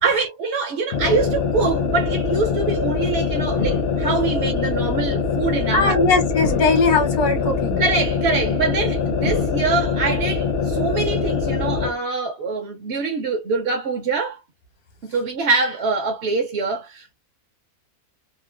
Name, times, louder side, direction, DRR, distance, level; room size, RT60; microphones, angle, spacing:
voice 1, 0.0-6.1 7.8-14.4 15.0-17.1, right 4 dB, 60° right, 0.8 m, -24 dB
sound 1, 0.9-12.0, left 5 dB, 60° left, 0.6 m, -23 dB
voice 2, 5.7-7.8, left 4 dB, 90° left, 1.4 m, -19 dB
3.0 x 2.1 x 2.3 m
omnidirectional pair, 1.6 m